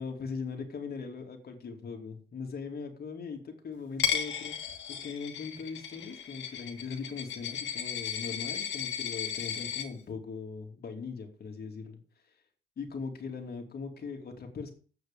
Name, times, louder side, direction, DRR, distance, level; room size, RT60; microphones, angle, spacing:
voice 1, 0.0-4.5 4.9-12.0 12.8-14.7, left 5 dB, 50° left, 4 dB, 2.8 m, -40 dB
Coin (dropping), 4.0-9.8, left 8 dB, 70° left, 2.1 m, -35 dB
8.2 x 6.6 x 7.4 m, 0.41 s
cardioid pair, 90°, 20 cm